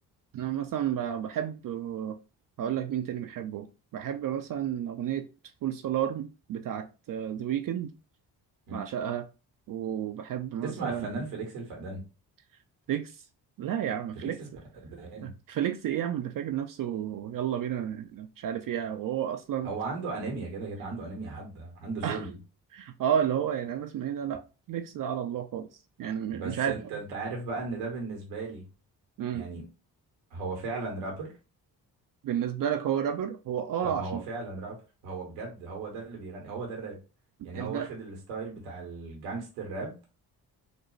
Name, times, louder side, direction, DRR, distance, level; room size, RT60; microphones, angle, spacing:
voice 1, 0.3-2.2 2.6-5.3 5.6-7.9 8.7-9.3 9.7-11.1 12.9-13.2 13.6-14.4 15.2-19.7 22.0-22.3 22.7-24.4 24.7-25.7 26.0-26.8 29.2-29.5 32.2-34.2 37.5-37.9, right 9 dB, 45° right, 0.4 m, -31 dB
voice 2, 10.6-12.0 14.1-14.5 14.9-15.3 19.6-22.4 26.3-28.6 29.3-29.6 30.3-31.3 33.8-37.0 37.4-40.0, right 3 dB, 85° right, 1.1 m, -36 dB
3.9 x 2.2 x 3.1 m
hypercardioid pair, 45°, 47 cm